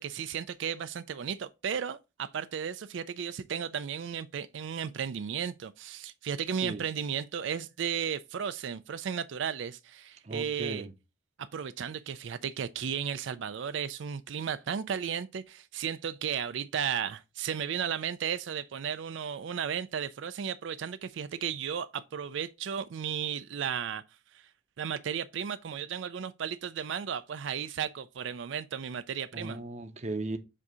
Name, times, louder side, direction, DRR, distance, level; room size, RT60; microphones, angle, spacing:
voice 1, 0.0-10.9 11.4-24.0 24.8-29.6, right 8 dB, 80° right, 0.4 m, -34 dB
voice 2, 10.2-10.9 29.3-30.4, right 2 dB, 35° right, 0.6 m, -36 dB
7.5 x 2.7 x 4.7 m
head